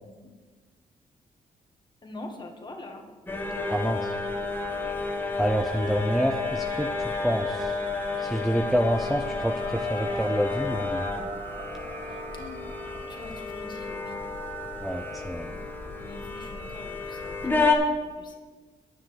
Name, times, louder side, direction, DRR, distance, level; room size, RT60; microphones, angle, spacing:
voice 1, 0.0-0.3 2.0-3.0 12.3-12.8 13.1-14.2 15.9-17.6 17.9-18.4, left 2 dB, 35° left, 2 dB, 1.9 m, -44 dB
sound 1, 3.3-17.8, left 3 dB, 15° left, 1.7 m, -31 dB
voice 2, 3.7-4.1 5.4-7.7 8.2-11.1 14.8-15.5, equal, ahead, 3 dB, 0.6 m, -27 dB
sound 2, 5.3-13.4, right 4 dB, 55° right, 1.0 m, -43 dB
10.0 x 6.1 x 7.3 m, 1.4 s
cardioid pair, 95°, 14 cm